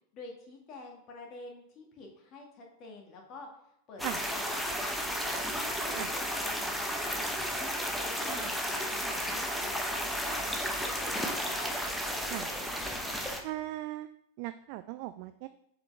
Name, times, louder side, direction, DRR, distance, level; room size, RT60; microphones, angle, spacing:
voice 1, 0.1-3.5 3.9-5.0 5.2-9.9 10.2-11.7, left 3 dB, 35° left, 1 dB, 1.9 m, -48 dB
sound 1, 4.0-13.4, equal, ahead, 0.9 m, -33 dB
voice 2, 12.2-12.5 13.4-14.1 14.4-15.5, right 15 dB, 45° right, 11 dB, 0.3 m, -38 dB
7.4 x 5.0 x 3.5 m, 0.78 s
figure-of-eight pair, 90°, 0 cm